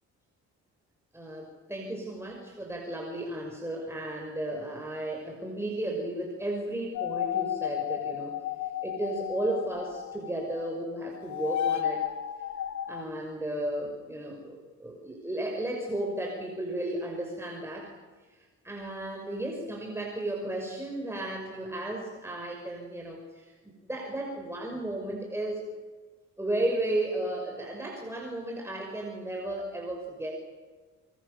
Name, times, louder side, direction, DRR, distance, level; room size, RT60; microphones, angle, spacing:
voice 1, 1.1-8.4 8.8-12.1 12.9-17.9 18.6-25.7 26.4-30.3, right 1 dB, 10° right, 0 dB, 5.9 m, -34 dB
sound 1, 6.9-10.8 11.0-13.0, left 10 dB, 70° left, 1.9 m, -33 dB
25.5 x 25.5 x 6.9 m, 1.3 s
cardioid pair, 90°, 30 cm